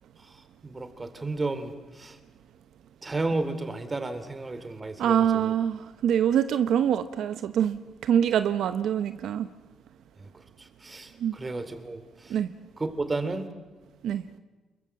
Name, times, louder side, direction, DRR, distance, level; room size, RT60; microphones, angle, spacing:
voice 1, 0.6-1.7 2.0-2.2 3.0-5.2 5.4-5.5 10.8-12.0 12.2-12.3 12.8-13.5, right 2 dB, 25° right, 10 dB, 2.9 m, -32 dB
voice 2, 5.0-9.5 11.2-11.3 12.3-12.5 14.0-14.2, right 9 dB, 75° right, 11 dB, 0.9 m, -25 dB
28.5 x 21.5 x 7.6 m, 1.3 s
cardioid pair, 90°, 0 cm